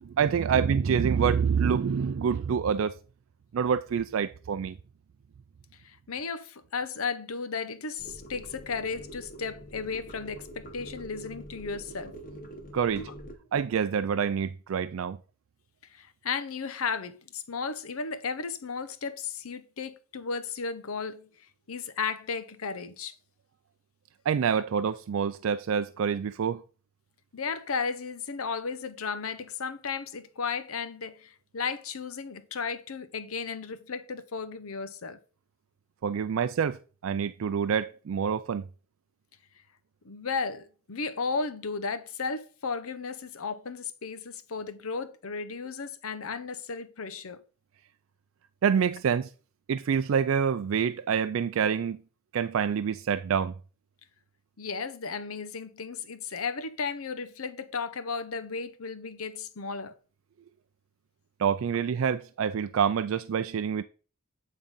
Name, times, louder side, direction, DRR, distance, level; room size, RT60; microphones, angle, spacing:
voice 1, 0.0-3.0 3.5-4.8 12.7-13.1 13.5-15.2 24.3-26.6 36.0-36.8 37.0-38.6 48.6-49.3 49.7-52.0 52.3-53.5 61.4-63.8, right 7 dB, 65° right, 0.4 m, -26 dB
voice 2, 5.8-12.1 13.0-13.1 16.0-21.2 21.7-23.1 27.3-35.2 40.0-47.4 54.6-59.9, left 5 dB, 85° left, 0.8 m, -34 dB
sound 1, 8.0-13.4, right 1 dB, 40° left, 1.3 m, -45 dB
8.7 x 3.8 x 5.4 m
head